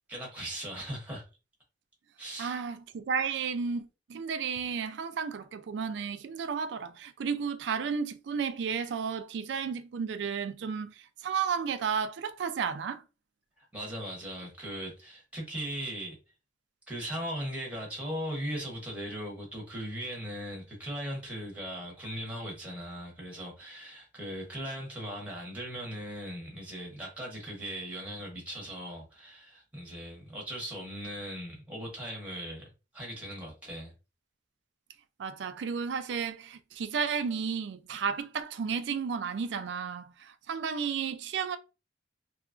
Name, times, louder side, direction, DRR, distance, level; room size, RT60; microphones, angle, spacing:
voice 1, 0.1-1.2 2.2-2.5 13.6-16.2 16.9-32.7 32.9-33.9, equal, 10° right, 0.8 m, -38 dB
voice 2, 2.4-13.0 35.2-41.6, right 6 dB, 70° right, 0.3 m, -33 dB
2.8 x 2.3 x 2.4 m
head